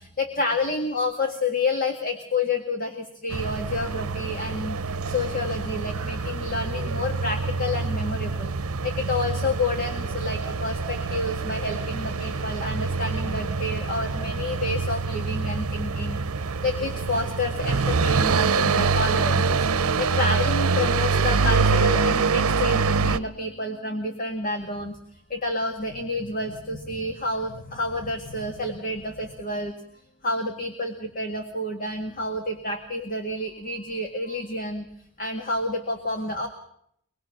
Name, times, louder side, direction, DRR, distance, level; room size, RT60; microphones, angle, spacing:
voice 1, 0.0-25.0 25.3-29.7 30.2-34.9 35.2-36.5, left 2 dB, 40° left, 4 dB, 1.8 m, -29 dB
sound 1, 3.3-23.2, right 4 dB, 85° right, 0.8 m, -25 dB
25.0 x 20.5 x 5.9 m, 0.71 s
head